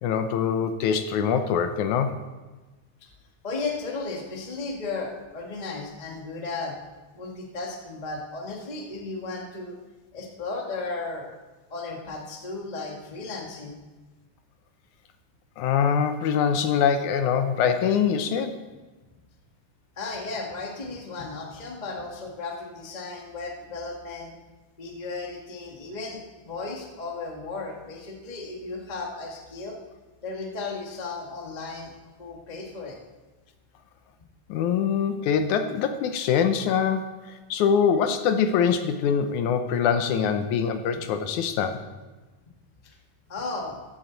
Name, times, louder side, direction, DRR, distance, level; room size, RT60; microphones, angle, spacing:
voice 1, 0.0-2.2 15.6-18.6 34.5-41.8, left 7 dB, 75° left, 8 dB, 2.1 m, -24 dB
voice 2, 3.4-6.8 7.1-9.8 10.1-11.3 11.7-13.7 20.0-24.3 24.8-29.8 30.2-31.9 32.2-33.0 43.3-43.8, left 3 dB, 20° left, 0 dB, 1.1 m, -35 dB
14.5 x 12.0 x 4.0 m, 1.2 s
omnidirectional pair, 3.6 m